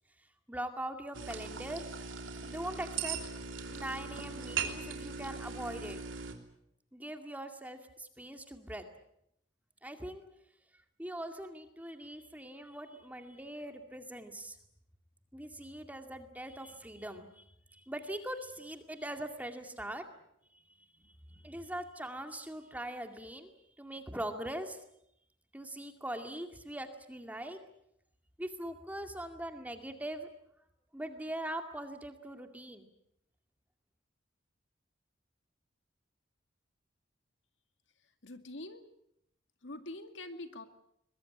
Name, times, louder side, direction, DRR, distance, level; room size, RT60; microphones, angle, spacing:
voice 1, 0.5-1.8 2.4-3.2 3.7-6.0 6.9-8.9 9.8-10.3 11.0-14.6 15.3-17.4 17.7-20.0 21.3-23.5 23.8-24.8 25.5-27.6 28.4-30.3 30.9-32.9, right 1 dB, 10° right, 6 dB, 2.2 m, -41 dB
sound 1, 1.1-6.3, right 5 dB, 85° right, 3.2 m, -39 dB
voice 2, 38.2-38.8 39.6-40.7, left 2 dB, 75° left, 8 dB, 2.3 m, -44 dB
22.5 x 21.5 x 8.8 m, 0.76 s
head